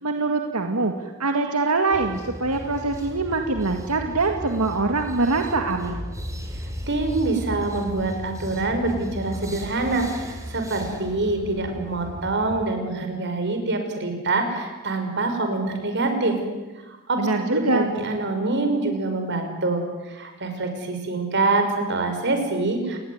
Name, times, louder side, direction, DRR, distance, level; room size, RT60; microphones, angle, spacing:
voice 1, 0.0-6.0 17.2-17.9, right 3 dB, 90° right, 4 dB, 2.0 m, -24 dB
sound 1, 1.9-12.7, equal, 15° right, 3.8 m, -36 dB
voice 2, 6.9-16.4 16.8-23.0, right 2 dB, 55° right, 6 dB, 5.7 m, -25 dB
29.5 x 20.5 x 9.6 m, 1.2 s
head